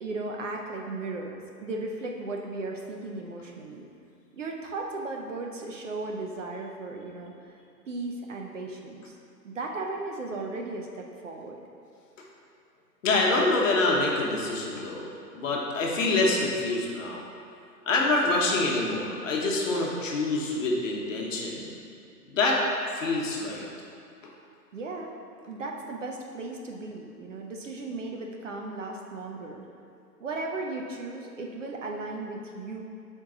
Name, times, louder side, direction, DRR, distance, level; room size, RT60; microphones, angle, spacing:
voice 1, 0.0-3.9 4.3-7.3 7.9-9.2 9.4-11.6 24.7-25.1 25.5-29.6 30.2-32.8, right 3 dB, 50° right, 1 dB, 0.6 m, -36 dB
voice 2, 13.0-17.2 17.9-21.7 22.3-22.6 22.9-23.7, left 2 dB, 50° left, -2 dB, 1.0 m, -26 dB
5.7 x 4.6 x 3.7 m, 2.5 s
hypercardioid pair, 170°, 49 cm